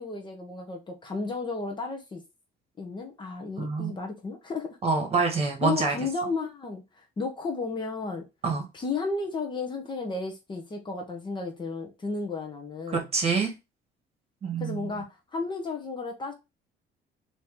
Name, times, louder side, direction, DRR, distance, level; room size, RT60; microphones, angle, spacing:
voice 1, 0.0-2.2 2.8-4.8 5.6-8.2 8.7-13.1 14.6-16.3, left 3 dB, 25° left, 1.0 m, -33 dB
voice 2, 3.6-4.0 4.8-6.0 8.4-8.6 12.9-13.5 14.4-15.0, right 4 dB, 35° right, 1.6 m, -26 dB
4.2 x 2.9 x 3.6 m
cardioid pair, 140°, 18 cm